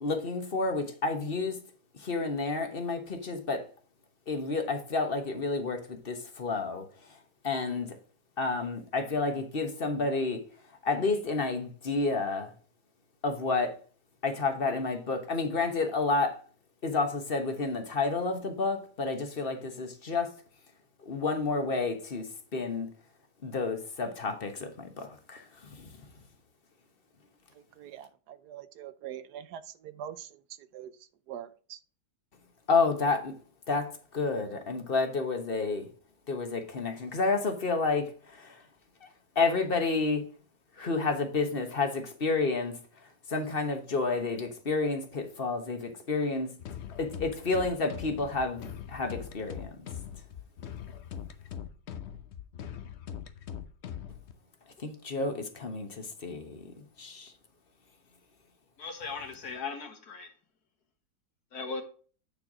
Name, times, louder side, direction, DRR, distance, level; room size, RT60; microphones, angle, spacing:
voice 1, 0.0-1.6 1.9-3.7 4.3-6.9 7.4-8.0 8.4-10.4 10.8-12.5 13.2-13.8 14.2-16.4 16.8-20.3 21.0-22.9 23.4-25.9 32.7-33.4 33.7-35.9 36.3-38.6 39.0-39.1 39.3-40.2 40.8-46.5 47.0-49.8 54.8-57.3, left 3 dB, 40° left, 1.3 m, -30 dB
voice 2, 27.8-30.9 31.3-31.8, right 10 dB, 80° right, 1.3 m, -43 dB
sound 1, 46.6-54.3, left 9 dB, 55° left, 0.8 m, -41 dB
voice 3, 58.8-60.3 61.5-61.8, left 4 dB, 70° left, 2.0 m, -38 dB
9.0 x 4.5 x 4.8 m
omnidirectional pair, 1.7 m